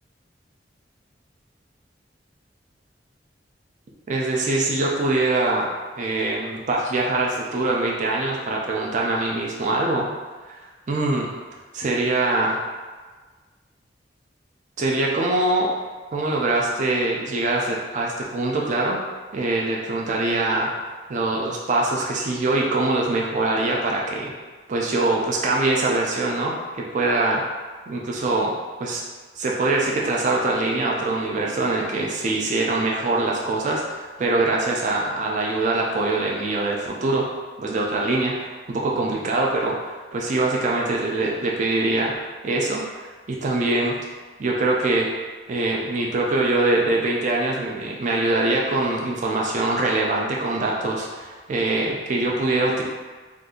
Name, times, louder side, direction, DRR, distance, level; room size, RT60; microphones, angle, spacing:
voice 1, 4.1-5.7 6.0-10.1 10.9-11.3 11.7-12.6 14.8-15.7 16.1-19.0 19.3-20.7 21.1-24.3 24.7-27.4 27.9-28.5 28.8-29.0 29.4-37.3 37.6-42.1 42.4-44.0 44.4-45.1 45.5-52.8, right 2 dB, 45° right, -2 dB, 0.4 m, -23 dB
2.6 x 2.4 x 3.7 m, 1.4 s
head